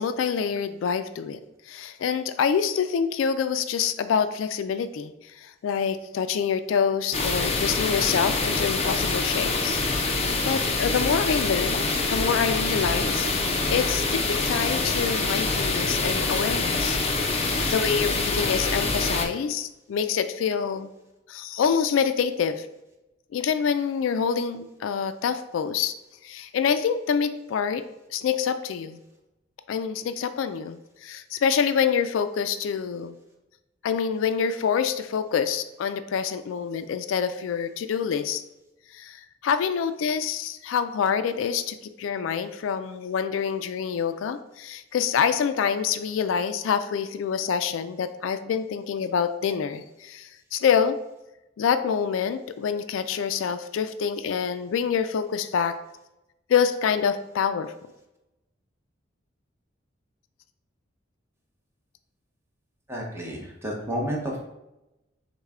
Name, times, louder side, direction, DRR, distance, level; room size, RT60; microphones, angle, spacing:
voice 1, 0.0-1.4 1.7-9.8 10.1-17.0 17.7-20.9 21.3-22.7 23.3-25.9 26.2-27.8 28.1-29.0 29.7-33.1 33.8-38.4 38.9-51.0 51.6-55.8 56.5-57.7, left 7 dB, 80° left, 11 dB, 0.3 m, -26 dB
sound 1, 7.1-19.3, left 3 dB, 30° left, 0.5 m, -25 dB
voice 2, 62.9-64.4, equal, 15° right, -2 dB, 0.9 m, -31 dB
6.3 x 2.2 x 3.5 m, 0.95 s
head